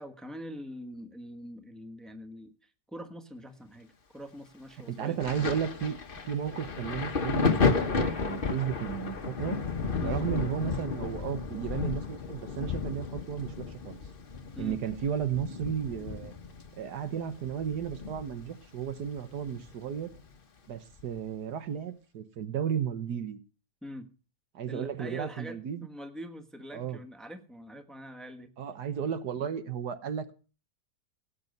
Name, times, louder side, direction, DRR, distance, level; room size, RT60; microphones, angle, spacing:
voice 1, 0.0-5.6 10.0-10.2 14.5-14.8 23.8-24.1 24.7-28.5, equal, ahead, 1.2 m, -44 dB
voice 2, 4.9-6.0 6.3-9.6 10.0-14.0 14.6-16.3 16.8-20.1 20.7-23.4 24.5-25.9 26.7-27.0 28.6-30.3, right 8 dB, 85° right, 1.7 m, -34 dB
Thunder, 5.2-18.6 18.8-20.2 21.0-21.2, left 4 dB, 35° left, 1.3 m, -32 dB
17.0 x 8.7 x 5.3 m
omnidirectional pair, 1.7 m